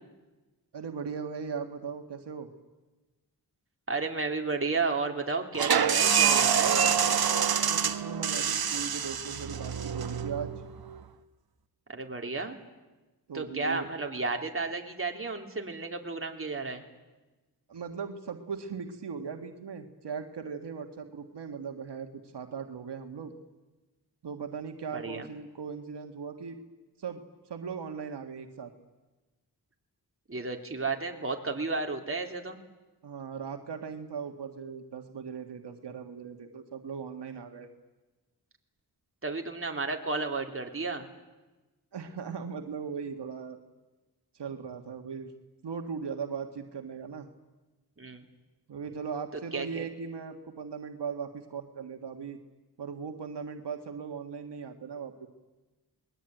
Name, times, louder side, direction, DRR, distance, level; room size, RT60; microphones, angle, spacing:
voice 1, 0.7-2.5 7.6-10.5 13.3-13.9 17.7-23.3 24.2-26.6 27.0-28.7 33.0-37.7 41.9-43.6 44.3-45.3 45.6-47.3 48.7-52.4 52.8-55.3, right 6 dB, 85° right, 5 dB, 1.8 m, -38 dB
voice 2, 3.9-6.9 11.9-12.6 13.3-16.8 24.9-25.3 30.3-32.6 39.2-41.1 48.0-48.2 49.5-49.8, right 3 dB, 30° right, 3 dB, 3.4 m, -32 dB
sound 1, 5.5-11.0, right 7 dB, 60° right, 1.2 m, -26 dB
28.0 x 21.0 x 9.1 m, 1.2 s
cardioid pair, 65°, 40 cm